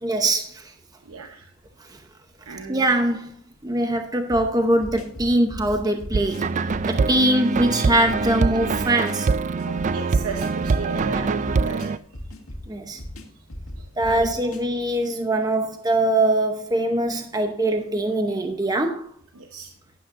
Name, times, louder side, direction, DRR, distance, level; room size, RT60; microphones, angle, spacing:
voice 1, 0.0-0.7 1.8-2.0 2.7-3.3 3.6-6.4 6.9-9.3 11.1-11.3 12.7-13.0 14.0-19.1, right 1 dB, 20° right, 0.8 m, -22 dB
voice 2, 1.0-1.5 2.4-2.9 9.6-12.0 13.8-14.3 19.3-19.7, right 5 dB, 85° right, 0.9 m, -35 dB
sound 1, 4.3-15.2, equal, 80° left, 1.9 m, -39 dB
sound 2, 6.1-12.0, right 4 dB, 35° right, 0.3 m, -24 dB
11.5 x 11.0 x 2.6 m
head